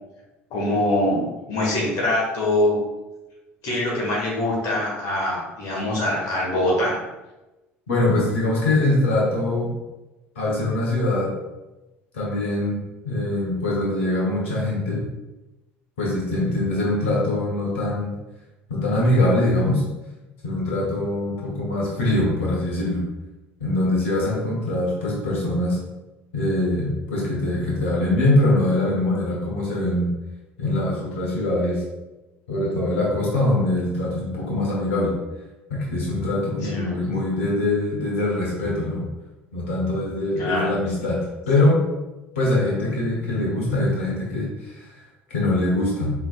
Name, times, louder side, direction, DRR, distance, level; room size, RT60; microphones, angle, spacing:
voice 1, 0.5-2.8 3.6-7.0 36.6-37.0 40.4-40.7, left 1 dB, 60° left, -4 dB, 1.5 m, -23 dB
voice 2, 7.9-9.7 10.3-11.3 12.1-12.8 13.0-15.0 16.0-18.1 18.7-19.8 20.4-23.0 23.6-25.8 26.3-30.1 30.6-31.8 32.5-35.1 35.7-39.0 39.5-41.2 41.5-41.8 42.3-46.1, left 1 dB, 80° left, -4 dB, 1.2 m, -23 dB
4.8 x 3.8 x 2.4 m, 1.0 s
hypercardioid pair, 65°, 7 cm